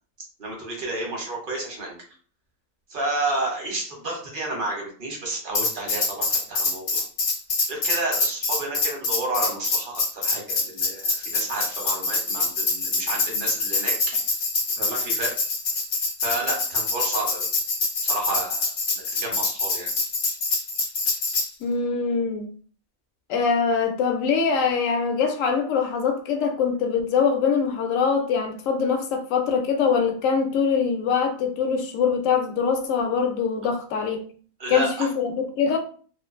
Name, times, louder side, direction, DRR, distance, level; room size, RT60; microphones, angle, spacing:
voice 1, 0.4-2.0 2.9-7.0 7.7-13.9 14.8-15.3 16.2-17.5 18.0-19.9 34.6-35.1, right 2 dB, 45° right, 0.9 m, -31 dB
Tambourine, 5.5-21.5, left 3 dB, 55° left, 0.6 m, -25 dB
voice 2, 21.6-22.5 23.3-34.3 34.7-35.8, left 6 dB, 75° left, 0.9 m, -23 dB
2.5 x 2.4 x 2.4 m
omnidirectional pair, 1.4 m